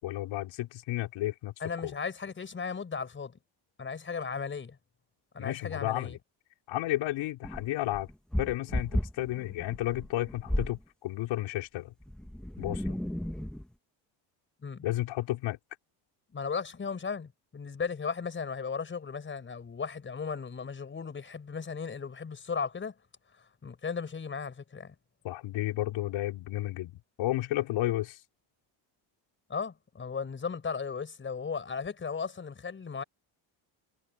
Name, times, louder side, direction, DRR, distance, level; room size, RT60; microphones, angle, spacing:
voice 1, 0.0-1.5 1.8-1.9 5.4-6.2 6.7-8.1 8.4-11.9 12.6-13.0 14.8-15.6 25.2-26.9 27.2-28.2, left 15 dB, 70° left, 4.6 m, -32 dB
voice 2, 1.6-3.3 3.8-4.8 5.3-6.2 14.6-14.8 16.3-22.9 23.4-24.9 29.5-33.0, left 5 dB, 25° left, 5.0 m, -36 dB
sound 1, 7.4-10.8 12.0-13.7, equal, ahead, 1.2 m, -34 dB
cardioid pair, 145°, 48 cm